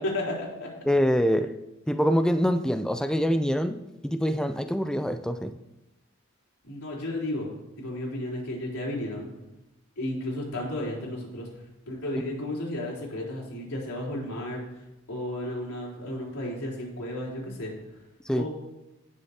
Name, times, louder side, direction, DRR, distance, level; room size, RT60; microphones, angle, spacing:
voice 1, 0.0-0.7 6.6-7.5 7.8-9.3 10.0-11.5 11.9-14.8 15.1-17.7 18.3-18.5, left 1 dB, 90° left, -5 dB, 3.7 m, -33 dB
voice 2, 0.9-1.6 1.9-5.5 18.3-18.5, equal, 5° left, 9 dB, 0.3 m, -25 dB
17.5 x 6.5 x 2.8 m, 0.97 s
head